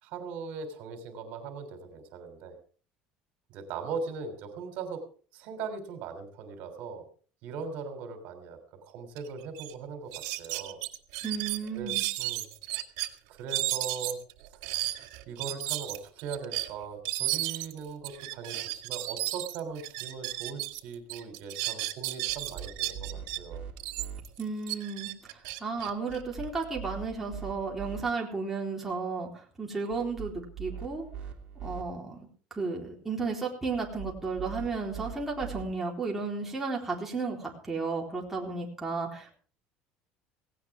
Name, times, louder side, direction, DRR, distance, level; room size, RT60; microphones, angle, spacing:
voice 1, 0.0-2.6 3.5-5.0 5.3-7.0 7.4-10.1 10.4-10.8 11.7-12.5 13.3-14.2 14.5-23.6, right 5 dB, 65° right, 7 dB, 3.3 m, -40 dB
sound 1, 9.2-9.3 9.5-9.7 10.1-13.1 13.5-20.8 21.1-23.4 23.8-26.6, right 17 dB, 85° right, 2.1 m, -34 dB
voice 2, 11.2-12.0 24.4-31.0 31.6-32.2 32.5-39.4, right 4 dB, 10° right, -2 dB, 3.9 m, -33 dB
sound 2, 22.3-24.2 26.1-28.0 29.9-31.8 33.7-35.6, right 7 dB, 45° right, 2.9 m, -42 dB
17.5 x 17.5 x 3.6 m, 0.42 s
cardioid pair, 150°, 3 cm